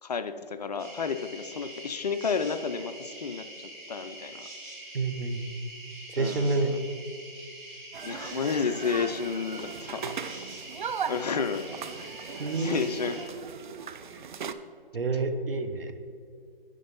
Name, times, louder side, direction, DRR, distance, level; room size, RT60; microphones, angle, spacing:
voice 1, 0.0-4.5 6.2-6.8 8.0-10.1 11.1-11.7 12.6-13.2, left 5 dB, 45° left, 10 dB, 0.5 m, -31 dB
sound 1, 0.8-13.2, right 1 dB, 15° right, 1.9 m, -44 dB
voice 2, 4.9-5.4 6.1-6.7 12.4-12.8 14.1-14.3 14.9-15.9, right 3 dB, 75° right, 7 dB, 1.1 m, -28 dB
sound 2, 7.9-14.5, right 6 dB, 55° right, 0.5 m, -38 dB
10.0 x 5.3 x 5.4 m, 2.3 s
figure-of-eight pair, 145°, 29 cm